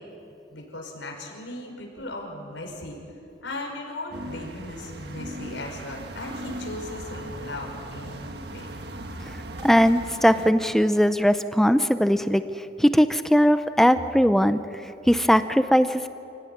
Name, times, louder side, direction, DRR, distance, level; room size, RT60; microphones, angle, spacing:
voice 1, 0.5-3.0 3.4-8.7, left 2 dB, 90° left, 0 dB, 5.7 m, -37 dB
sound 1, 4.1-10.5, right 1 dB, 60° right, 1.6 m, -38 dB
voice 2, 9.6-12.4 12.8-14.6 15.1-16.1, equal, ahead, 10 dB, 0.6 m, -19 dB
29.5 x 18.0 x 9.6 m, 2.7 s
head